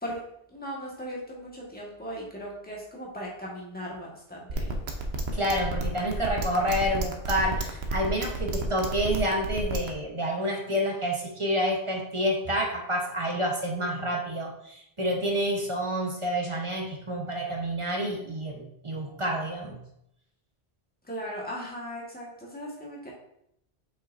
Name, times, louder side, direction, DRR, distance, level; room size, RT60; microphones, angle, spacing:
voice 1, 0.5-4.7 21.1-23.1, equal, 10° left, -4 dB, 1.6 m, -38 dB
sound 1, 4.5-9.9, right 3 dB, 85° right, 1.1 m, -31 dB
voice 2, 5.3-19.8, equal, 30° right, 0 dB, 1.1 m, -28 dB
7.0 x 5.6 x 2.6 m, 0.75 s
omnidirectional pair, 1.0 m